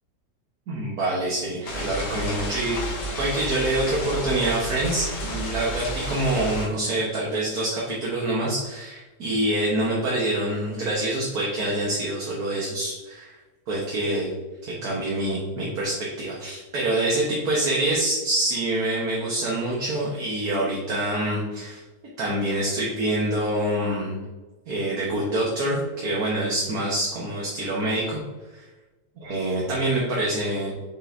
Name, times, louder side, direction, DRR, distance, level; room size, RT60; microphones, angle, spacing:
voice 1, 0.7-2.8 3.2-13.4 13.7-14.3 14.8-21.8 22.2-24.2 24.7-28.2 28.5-28.6 29.2-30.7, right 1 dB, 55° right, -5 dB, 1.7 m, -26 dB
sound 1, 1.7-6.7, right 1 dB, 90° left, 2.2 m, -31 dB
6.6 x 6.4 x 2.7 m, 1.2 s
omnidirectional pair, 2.1 m